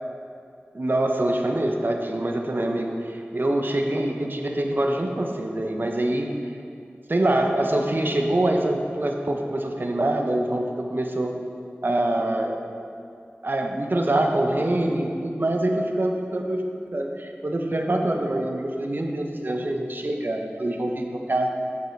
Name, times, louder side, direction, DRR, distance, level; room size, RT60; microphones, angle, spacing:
voice 1, 0.7-6.3 7.1-11.3 11.8-12.6 13.4-16.6 16.9-21.5, right 1 dB, 50° right, 2 dB, 0.9 m, -25 dB
8.5 x 7.3 x 4.6 m, 2.5 s
wide cardioid pair, 55°, 4 cm